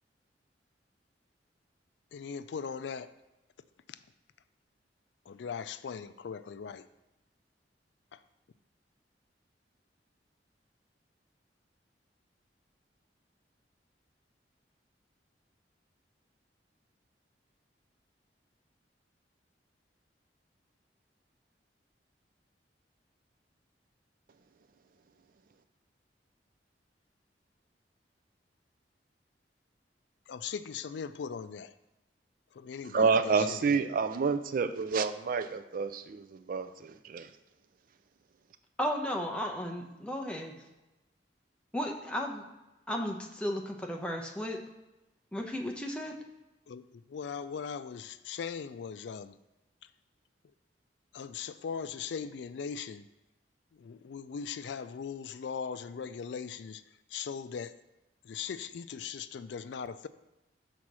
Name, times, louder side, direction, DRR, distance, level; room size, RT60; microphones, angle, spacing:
voice 1, 2.1-3.1 3.9-4.0 5.3-6.9 8.1-8.2 30.3-31.7 32.5-33.8 46.7-49.3 49.8-49.9 51.1-53.0 53.7-56.8 57.1-57.7 58.2-60.1, left 6 dB, 75° left, 13 dB, 0.4 m, -39 dB
voice 2, 32.9-37.3, right 5 dB, 50° right, 11 dB, 0.4 m, -29 dB
voice 3, 38.8-40.5 41.7-42.4 42.9-44.6 45.3-46.2, equal, 5° left, 1 dB, 0.8 m, -34 dB
6.4 x 4.1 x 6.1 m, 1.0 s
head